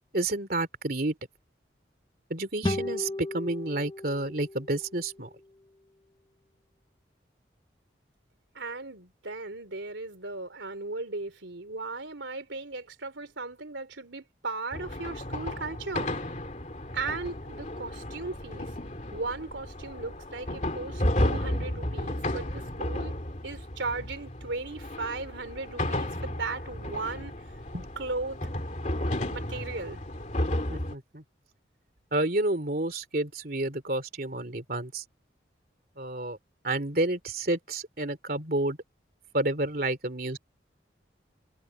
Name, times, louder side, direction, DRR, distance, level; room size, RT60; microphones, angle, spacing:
voice 1, 0.1-1.1 2.3-5.3 27.7-27.9 30.7-31.2 32.1-35.0 36.0-36.4 36.6-38.8 39.3-40.4, right 2 dB, 50° right, 3.3 m, -30 dB
sound 1, 2.6-6.0, left 1 dB, 25° left, 1.2 m, -36 dB
voice 2, 8.5-16.1 16.9-18.7 19.1-23.1 23.4-27.4 28.0-28.5 29.3-30.0, right 3 dB, 85° right, 3.5 m, -37 dB
sound 2, 14.7-31.0, left 1 dB, 40° left, 2.6 m, -33 dB
head